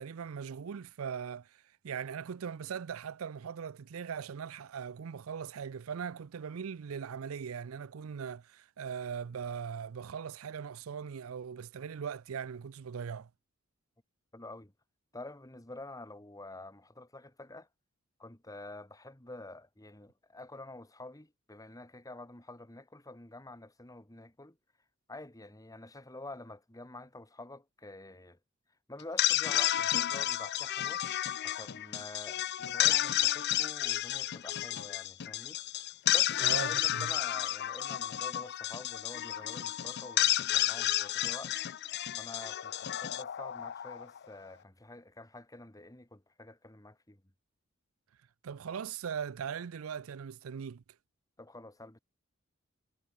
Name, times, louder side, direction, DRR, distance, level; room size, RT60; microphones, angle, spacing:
voice 1, 0.0-13.3 36.4-37.1 48.4-50.8, right 7 dB, 85° right, 0.5 m, -40 dB
voice 2, 14.3-14.7 15.1-17.7 18.2-24.6 25.1-28.4 28.9-31.0 31.4-35.6 36.1-41.6 42.1-47.2 51.4-52.0, left 2 dB, 15° left, 1.9 m, -48 dB
sound 1, 29.0-44.2, left 13 dB, 50° left, 0.5 m, -31 dB
head